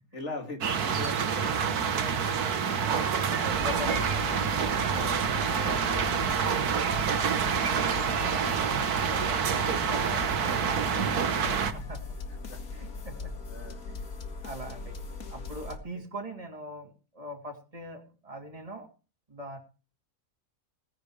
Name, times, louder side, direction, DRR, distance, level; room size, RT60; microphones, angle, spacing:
voice 1, 0.1-2.4 4.5-7.2 8.3-8.5 11.1-11.4 12.5-12.6 13.5-13.8, left 3 dB, 50° left, 4 dB, 3.4 m, -43 dB
sound 1, 0.6-11.7, right 7 dB, 80° right, 1.8 m, -27 dB
voice 2, 2.5-5.5 7.7-8.6 9.0-12.0 12.7-13.3 13.9-14.0 14.4-15.0 15.3-18.9 19.3-19.6, right 1 dB, 25° right, 2 dB, 3.1 m, -42 dB
sound 2, 3.5-15.8, left 4 dB, 70° left, 2.2 m, -39 dB
18.0 x 10.5 x 4.9 m, 0.34 s
omnidirectional pair, 1.6 m